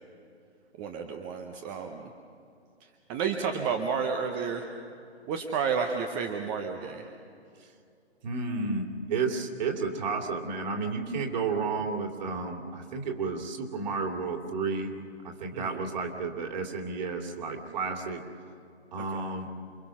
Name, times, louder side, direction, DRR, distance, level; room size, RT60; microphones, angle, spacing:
voice 1, 0.8-2.1 3.1-4.7 5.3-7.1 15.5-15.7 19.0-19.1, right 6 dB, 15° right, 4 dB, 0.8 m, -31 dB
voice 2, 8.2-14.9 15.2-18.2 18.9-19.5, right 4 dB, 40° right, 2 dB, 3.0 m, -32 dB
28.0 x 23.5 x 6.1 m, 2.5 s
figure-of-eight pair, 135°, 33 cm